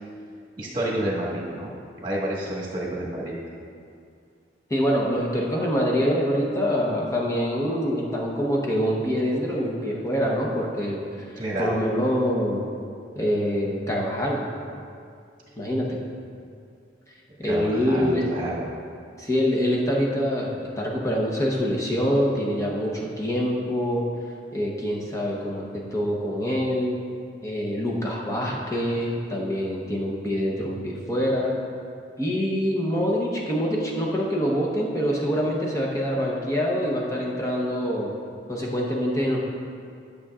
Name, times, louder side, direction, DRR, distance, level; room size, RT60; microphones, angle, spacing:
voice 1, 0.6-1.7 2.0-3.4 11.4-11.7 17.4-18.7, right 1 dB, 25° right, -6 dB, 1.8 m, -29 dB
voice 2, 4.7-11.0 11.6-12.6 13.2-14.4 15.6-15.8 17.4-18.3 19.2-20.5 20.8-24.0 24.5-27.0 27.4-31.5 32.2-38.1 38.5-39.4, equal, 15° left, -3 dB, 0.9 m, -25 dB
12.0 x 6.7 x 2.4 m, 2.4 s
head